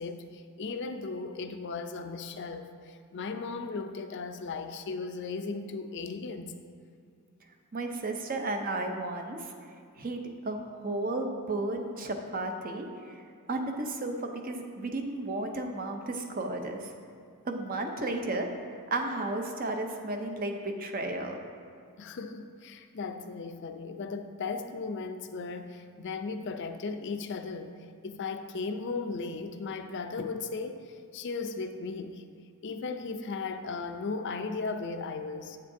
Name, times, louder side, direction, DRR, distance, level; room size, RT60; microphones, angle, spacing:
voice 1, 0.0-6.5 22.0-27.7 28.0-32.2 32.6-35.6, left 4 dB, 50° left, 0.4 m, -36 dB
voice 2, 7.7-9.5 10.0-13.2 13.5-16.9 17.4-18.5 18.9-21.4, right 2 dB, 40° right, 0.6 m, -33 dB
8.4 x 7.4 x 2.6 m
head